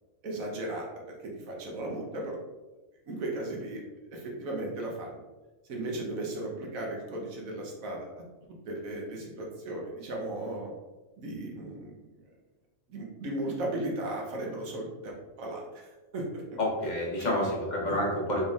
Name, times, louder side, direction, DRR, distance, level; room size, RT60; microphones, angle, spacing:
voice 1, 0.2-2.4 3.1-3.8 4.1-5.2 5.7-8.1 8.7-10.7 11.2-12.1 12.9-16.6 17.2-17.3, right 1 dB, 90° right, -2 dB, 1.3 m, -36 dB
voice 2, 16.6-18.4, left 1 dB, 40° left, -3 dB, 0.9 m, -29 dB
4.3 x 3.5 x 2.4 m, 1.1 s
omnidirectional pair, 1.4 m